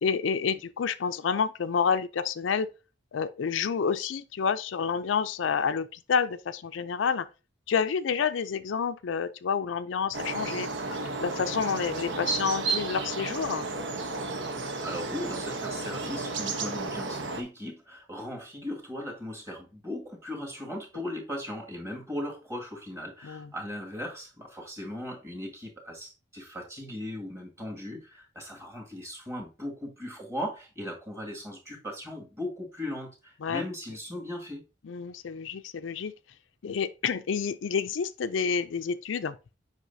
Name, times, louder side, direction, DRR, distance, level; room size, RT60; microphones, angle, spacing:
voice 1, 0.0-2.7 3.1-7.3 7.7-13.6 23.2-23.5 33.4-33.6 34.8-36.1 36.6-39.4, left 6 dB, 80° left, 0.4 m, -29 dB
sound 1, 10.1-17.4, right 3 dB, 65° right, 0.9 m, -33 dB
voice 2, 14.8-34.6, left 1 dB, 15° right, 1.9 m, -38 dB
8.0 x 5.3 x 2.7 m
head